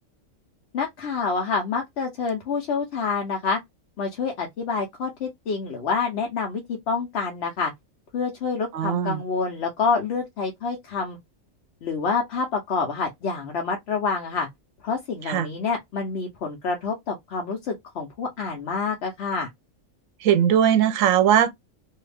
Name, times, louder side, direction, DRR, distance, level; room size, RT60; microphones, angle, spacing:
voice 1, 0.7-3.6 4.0-7.7 8.1-11.2 11.8-14.5 14.8-19.5, left 5 dB, 60° left, 0.9 m, -27 dB
voice 2, 8.7-9.2 15.3-15.5 20.2-21.5, right 9 dB, 80° right, 0.9 m, -19 dB
2.7 x 2.4 x 3.3 m
omnidirectional pair, 1.4 m